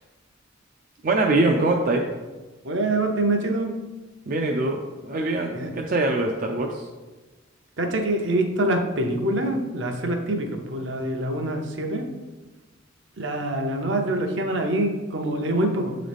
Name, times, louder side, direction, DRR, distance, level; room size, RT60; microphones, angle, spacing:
voice 1, 1.0-2.0 4.3-6.9, right 2 dB, 45° right, 1 dB, 0.4 m, -23 dB
voice 2, 2.6-3.7 5.5-5.7 7.8-12.1 13.2-16.0, right 1 dB, 65° right, 3 dB, 0.8 m, -25 dB
7.8 x 3.9 x 3.4 m, 1.3 s
head